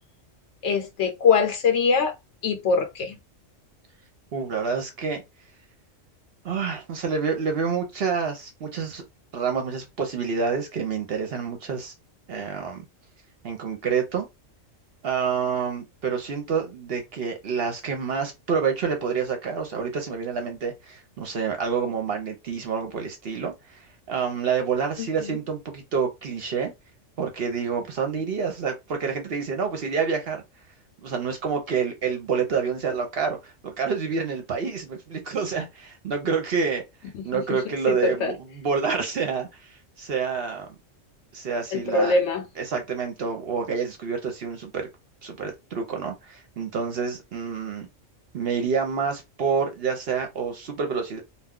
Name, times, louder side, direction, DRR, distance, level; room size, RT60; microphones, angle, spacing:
voice 1, 0.6-2.1 2.4-3.2 25.0-25.4 37.3-37.4 37.9-38.3 41.7-42.4, left 5 dB, 65° left, 0.9 m, -23 dB
voice 2, 4.3-5.2 6.4-9.0 9.3-11.9 12.3-12.8 13.4-14.3 15.0-26.7 27.2-30.4 31.0-36.8 37.2-40.7 41.3-42.1 42.6-44.9 45.2-47.9 48.3-51.2, right 6 dB, 60° right, 0.8 m, -28 dB
2.3 x 2.3 x 3.5 m
omnidirectional pair, 1.3 m